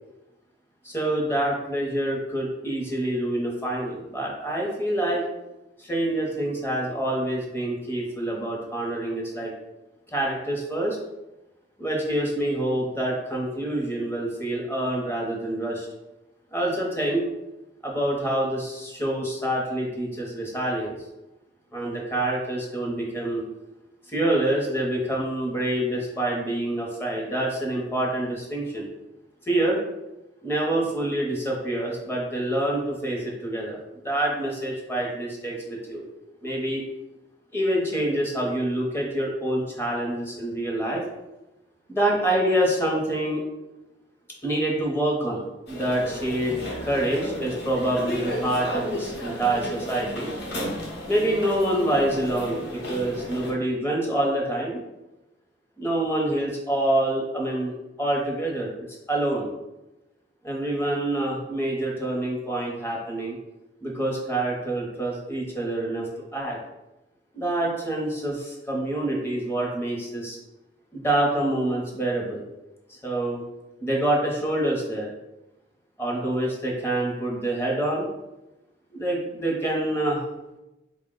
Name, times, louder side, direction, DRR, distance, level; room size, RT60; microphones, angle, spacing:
voice 1, 0.8-5.2 5.8-9.5 10.1-11.0 11.8-15.9 16.5-17.3 17.8-21.0 21.7-23.4 24.1-28.9 29.5-29.8 30.4-33.8 34.0-36.0 36.4-36.8 37.5-41.0 41.9-43.4 44.4-50.3 51.1-54.8 55.8-58.7 59.1-59.5 60.4-63.4 63.8-66.1 66.3-66.6 67.3-70.4 70.9-72.4 72.9-73.4 73.8-75.1 76.0-78.1 78.9-80.2, right 1 dB, 15° left, -2 dB, 0.7 m, -26 dB
sound 1, 45.7-53.5, equal, 65° left, 0.8 m, -33 dB
4.1 x 2.1 x 3.7 m, 1.0 s
head